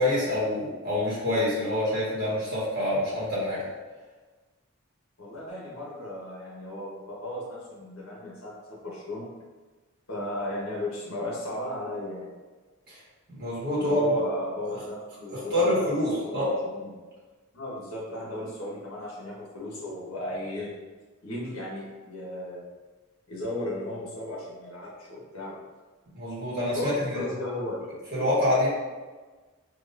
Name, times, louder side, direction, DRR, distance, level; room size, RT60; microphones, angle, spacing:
voice 1, 0.0-3.6 12.9-13.0 13.3-14.1 14.7-14.8 15.3-16.5 26.1-27.2 28.1-28.7, left 1 dB, 45° right, -8 dB, 1.5 m, -26 dB
voice 2, 5.2-9.3 10.1-12.3 13.8-17.0 17.5-20.7 21.2-22.6 23.3-25.6 26.7-27.8, left 1 dB, 70° left, -5 dB, 1.3 m, -35 dB
4.0 x 3.1 x 2.6 m, 1.3 s
head